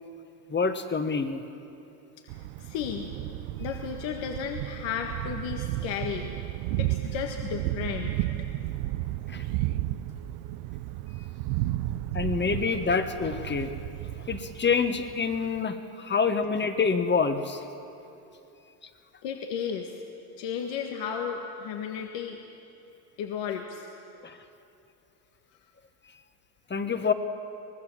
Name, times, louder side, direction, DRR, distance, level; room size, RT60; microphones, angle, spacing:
voice 1, 0.5-1.4 9.3-9.4 12.1-13.7 14.3-17.6 24.2-24.4 26.7-27.1, left 5 dB, 20° left, 9 dB, 1.6 m, -26 dB
voice 2, 2.2-3.1 3.6-6.3 6.8-8.2 19.2-20.0 20.4-22.4 23.2-23.9, left 7 dB, 65° left, 3 dB, 1.9 m, -34 dB
Thunder, 2.3-15.6, right 15 dB, 70° right, 0.9 m, -33 dB
25.0 x 19.0 x 7.4 m, 2.8 s
supercardioid pair, 90°, 48 cm